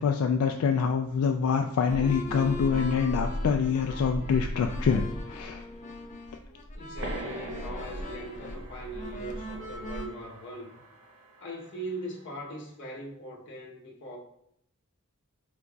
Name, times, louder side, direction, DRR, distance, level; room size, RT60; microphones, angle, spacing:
voice 1, 0.0-5.6, left 6 dB, 80° left, 4 dB, 0.3 m, -26 dB
sound 1, 1.9-10.1, left 1 dB, 35° left, 0.6 m, -36 dB
voice 2, 6.7-10.7 11.4-14.2, right 1 dB, 55° left, -1 dB, 0.9 m, -40 dB
sound 2, 7.0-12.2, right 2 dB, 80° right, 0.8 m, -44 dB
4.6 x 3.9 x 2.3 m, 0.75 s
head